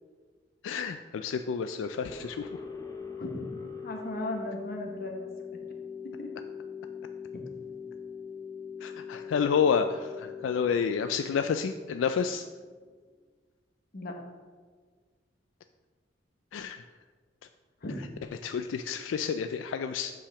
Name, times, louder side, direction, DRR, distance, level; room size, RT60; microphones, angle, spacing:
voice 1, 0.6-2.5 8.8-12.4 16.5-16.8 18.4-20.1, left 6 dB, 90° left, 9 dB, 0.3 m, -29 dB
sound 1, 2.1-13.0, left 6 dB, 20° left, 0.6 m, -42 dB
voice 2, 3.2-3.5 3.8-5.6 6.2-6.3 7.3-7.4 13.9-14.1 17.8-18.0, left 1 dB, 55° left, 2 dB, 1.1 m, -37 dB
5.7 x 4.9 x 5.7 m, 1.5 s
head